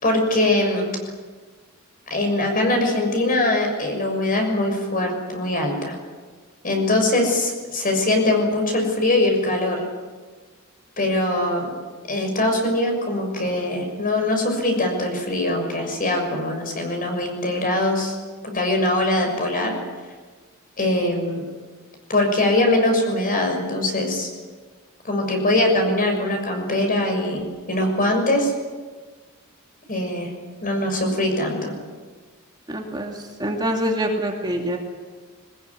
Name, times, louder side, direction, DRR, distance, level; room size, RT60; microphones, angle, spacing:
voice 1, 0.0-0.9 2.1-5.9 6.6-9.8 11.0-11.7 12.1-18.2 18.4-19.7 20.8-21.4 22.1-24.3 25.0-28.5 29.9-30.3 30.6-31.7, left 1 dB, 40° left, 3 dB, 6.5 m, -22 dB
voice 2, 32.7-34.8, equal, 20° right, 1 dB, 2.7 m, -25 dB
22.5 x 20.5 x 9.9 m, 1.4 s
head